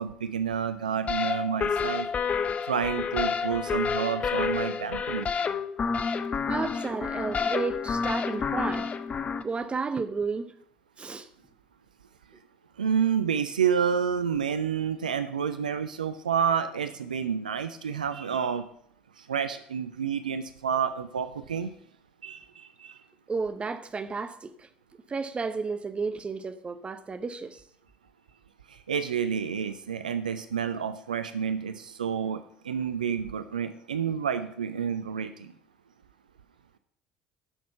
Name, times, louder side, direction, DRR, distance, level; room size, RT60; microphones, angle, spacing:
voice 1, 0.0-2.1 2.7-5.3 12.8-18.6 19.2-21.7 22.2-22.4 22.8-22.9 28.7-35.5, right 7 dB, 80° right, 0.4 m, -29 dB
sound 1, 1.1-9.4, left 6 dB, 30° left, 0.7 m, -29 dB
voice 2, 2.0-2.7 6.5-10.5 11.0-11.3 23.3-24.7 25.1-27.6, right 4 dB, 25° right, 0.9 m, -33 dB
9.9 x 6.3 x 5.7 m
figure-of-eight pair, 60°, 4 cm